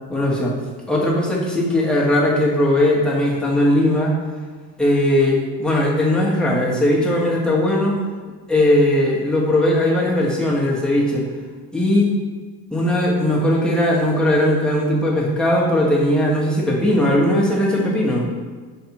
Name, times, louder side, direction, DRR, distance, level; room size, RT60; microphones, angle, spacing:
voice 1, 0.1-0.5 0.9-4.1 4.8-8.0 8.5-11.2 11.7-12.1 12.7-18.3, left 1 dB, ahead, -5 dB, 1.0 m, -18 dB
5.7 x 3.3 x 2.9 m, 1.5 s
cardioid pair, 110°, 40 cm